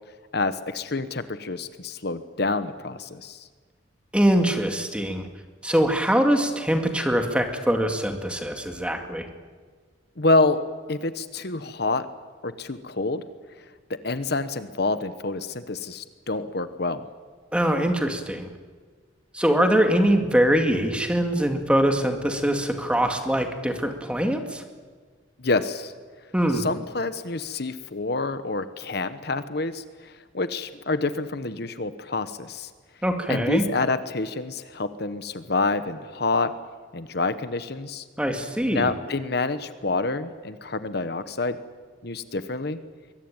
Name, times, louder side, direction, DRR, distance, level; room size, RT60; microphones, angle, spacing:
voice 1, 0.3-3.5 10.2-10.6 10.9-12.1 12.4-13.2 13.9-17.0 25.4-25.9 26.5-32.7 33.3-36.5 36.9-38.0 38.7-41.6 42.0-42.8, left 3 dB, 60° left, 12 dB, 1.1 m, -27 dB
voice 2, 4.1-5.3 5.6-9.3 17.5-18.5 19.3-24.6 26.3-26.6 33.0-33.6 38.2-38.9, equal, 5° right, 5 dB, 2.2 m, -23 dB
24.0 x 22.5 x 9.0 m, 1.5 s
head